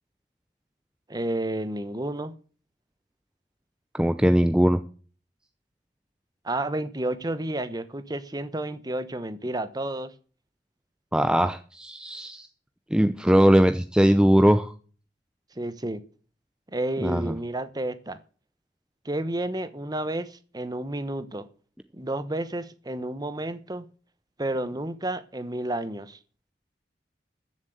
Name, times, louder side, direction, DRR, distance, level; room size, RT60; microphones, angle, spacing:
voice 1, 1.1-2.3 6.4-10.1 15.6-16.0 16.7-18.2 19.0-21.5 21.9-23.8 24.4-26.2, right 1 dB, 20° right, 1.0 m, -31 dB
voice 2, 3.9-4.8 11.1-12.5 12.9-14.7 17.0-17.3, equal, 5° right, 0.6 m, -20 dB
14.0 x 7.4 x 7.9 m
head